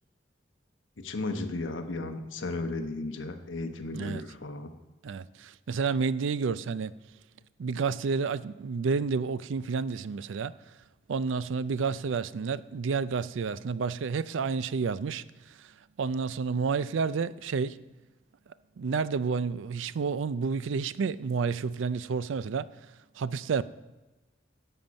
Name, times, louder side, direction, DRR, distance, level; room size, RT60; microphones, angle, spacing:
voice 1, 1.0-4.7, left 2 dB, 80° left, 1.0 m, -35 dB
voice 2, 3.9-4.3 5.0-6.9 7.6-10.5 11.1-15.2 15.6-15.7 16.0-17.8 18.8-22.7 23.2-23.6, right 5 dB, 80° right, 0.4 m, -30 dB
11.5 x 7.3 x 5.3 m
head